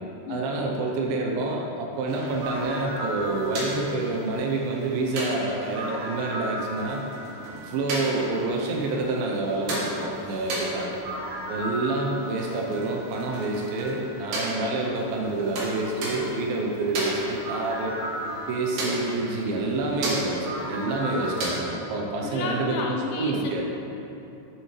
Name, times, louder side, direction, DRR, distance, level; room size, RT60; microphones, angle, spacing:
voice 1, 0.3-7.1 7.5-11.0 11.5-17.9 18.5-23.6, right 2 dB, 85° right, -1 dB, 2.1 m, -28 dB
sound 1, 2.1-21.6, right 1 dB, 55° right, 2.9 m, -34 dB
voice 2, 21.1-21.5 22.2-23.6, left 3 dB, 85° left, -1 dB, 3.3 m, -32 dB
10.0 x 9.5 x 3.2 m, 3.0 s
omnidirectional pair, 5.3 m